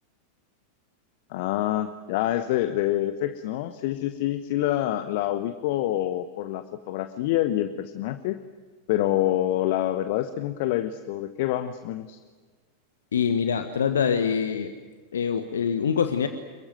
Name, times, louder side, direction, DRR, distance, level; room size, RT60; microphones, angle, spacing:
voice 1, 1.3-8.4 8.9-12.2, left 13 dB, 50° left, 11 dB, 1.1 m, -26 dB
voice 2, 13.1-14.7 15.1-16.3, left 7 dB, 65° left, 8 dB, 1.5 m, -24 dB
27.5 x 23.0 x 7.8 m, 1.4 s
figure-of-eight pair, 90°, 0 cm